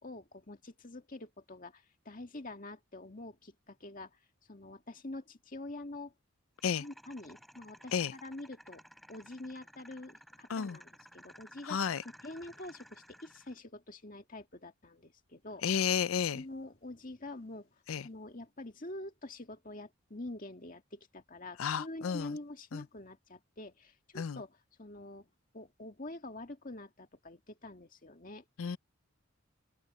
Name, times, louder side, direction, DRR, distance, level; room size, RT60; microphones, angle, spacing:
voice 1, 0.0-4.2 4.5-6.1 6.8-8.8 9.1-15.6 16.3-17.7 18.0-25.3 25.5-28.4, left 2 dB, 40° left, 2.1 m, -46 dB
sound 1, 6.6-13.6, equal, ahead, 3.8 m, -56 dB
voice 2, 11.6-12.0 15.6-16.4 17.9-18.1 21.6-22.4 22.7-22.8 24.2-24.4 28.6-28.8, left 7 dB, 80° left, 0.5 m, -32 dB
open air
head